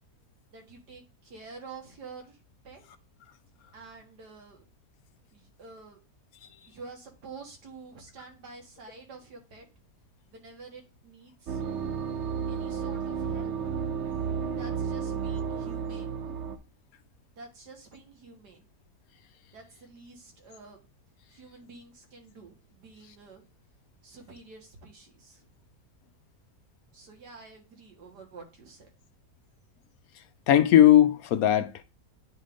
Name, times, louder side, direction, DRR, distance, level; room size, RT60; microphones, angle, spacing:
voice 1, 0.5-2.4 2.6-2.8 3.7-4.7 5.3-6.0 6.6-9.7 10.3-11.6 12.5-13.8 14.5-16.2 17.4-18.7 19.5-20.8 21.3-23.4 24.0-25.5 26.9-28.9, right 4 dB, 90° right, 2.1 m, -48 dB
sound 1, 11.5-16.6, right 6 dB, 60° right, 0.8 m, -32 dB
voice 2, 30.5-31.8, left 11 dB, 70° left, 1.0 m, -19 dB
9.2 x 3.7 x 3.5 m
omnidirectional pair, 1.7 m